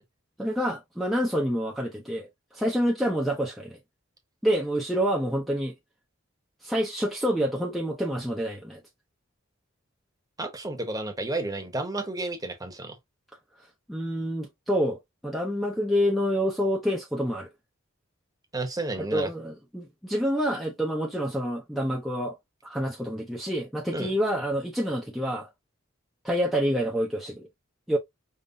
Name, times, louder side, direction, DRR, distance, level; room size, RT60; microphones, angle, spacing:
voice 1, 0.4-3.8 4.4-5.7 6.6-8.8 13.9-17.5 19.0-22.4 22.6-25.5 26.2-27.5 27.9-28.0, equal, ahead, 0.8 m, -27 dB
voice 2, 10.4-13.0 18.5-19.3 23.9-24.1, right 2 dB, 20° right, 1.1 m, -31 dB
5.4 x 3.1 x 2.7 m
head